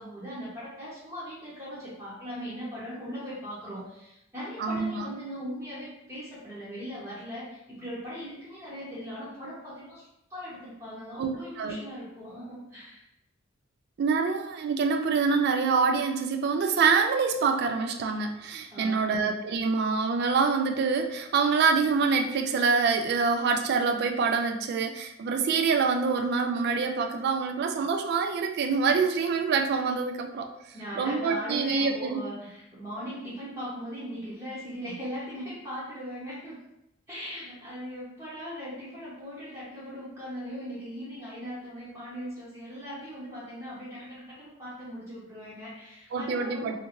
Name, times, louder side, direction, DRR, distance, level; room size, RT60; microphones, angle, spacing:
voice 1, 0.0-13.0 18.7-19.1 30.7-36.6 37.1-46.8, equal, 15° right, -12 dB, 0.7 m, -39 dB
voice 2, 4.6-5.1 11.2-11.8 14.0-30.5 30.9-32.2 46.1-46.8, right 5 dB, 50° right, 5 dB, 0.3 m, -26 dB
2.5 x 2.5 x 2.8 m, 0.83 s
head